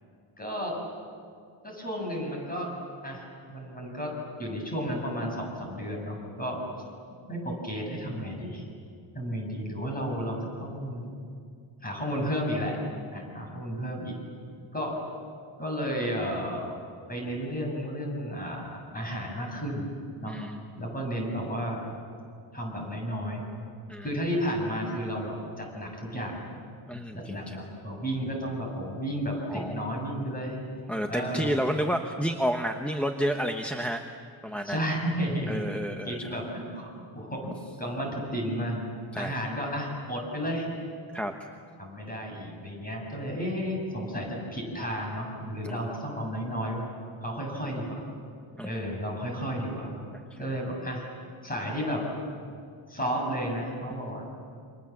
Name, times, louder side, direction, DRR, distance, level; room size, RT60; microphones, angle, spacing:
voice 1, 0.4-0.7 1.6-2.7 3.0-4.1 4.4-6.6 7.3-8.6 9.1-11.1 11.8-12.8 13.1-14.1 14.7-15.0 15.6-16.7 17.1-19.9 20.2-20.4 20.8-21.8 22.5-23.4 24.0-26.5 27.1-30.6 31.1-31.6 34.6-38.8 39.2-40.7 41.8-46.8 47.2-48.0 48.6-49.9 50.4-51.0 51.4-52.0 52.9-54.2, equal, 20° left, 0 dB, 7.7 m, -32 dB
voice 2, 20.3-20.6 23.9-24.1 26.9-27.6 29.5-29.8 30.9-34.0 34.4-34.8 35.5-36.3 39.1-39.3 41.1-41.3 45.6-45.8 48.6-48.7, equal, 5° left, 3 dB, 1.0 m, -30 dB
29.0 x 26.5 x 7.5 m, 2.3 s
wide cardioid pair, 155°, 48 cm